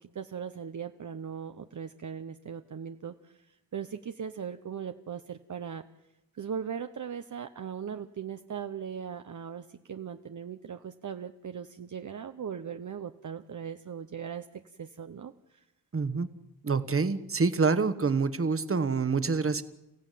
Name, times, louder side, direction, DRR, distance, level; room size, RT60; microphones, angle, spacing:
voice 1, 0.1-5.8 6.4-14.5 14.8-15.6, right 7 dB, 55° right, 8 dB, 0.8 m, -39 dB
voice 2, 15.9-16.3 16.6-19.6, right 4 dB, 35° right, 12 dB, 1.3 m, -27 dB
29.5 x 16.5 x 9.2 m, 0.96 s
wide cardioid pair, 160°, 36 cm